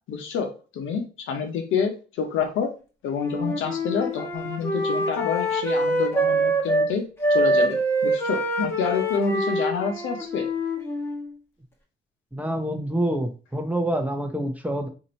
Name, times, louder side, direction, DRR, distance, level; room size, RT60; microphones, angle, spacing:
voice 1, 0.1-2.7 3.0-7.0 7.3-10.5, left 6 dB, 85° left, 5 dB, 0.9 m, -28 dB
Wind instrument woodwind instrument, 3.2-6.9 7.2-11.3, right 1 dB, 10° left, 1.2 m, -25 dB
voice 2, 12.3-14.9, right 1 dB, 5° right, 5 dB, 0.7 m, -27 dB
2.8 x 2.6 x 4.3 m, 0.35 s
cardioid pair, 90°, 20 cm